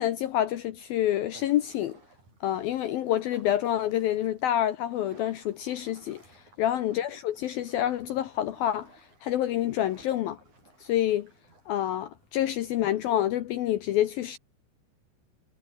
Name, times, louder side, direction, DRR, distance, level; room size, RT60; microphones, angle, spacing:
voice 1, 0.0-2.0 2.4-6.2 6.6-8.9 9.2-10.4 10.8-11.3 11.7-14.4, left 12 dB, 75° left, 2.2 m, -27 dB
sound 1, 1.3-12.3, right 3 dB, 40° right, 9.0 m, -58 dB
omnidirectional pair, 5.5 m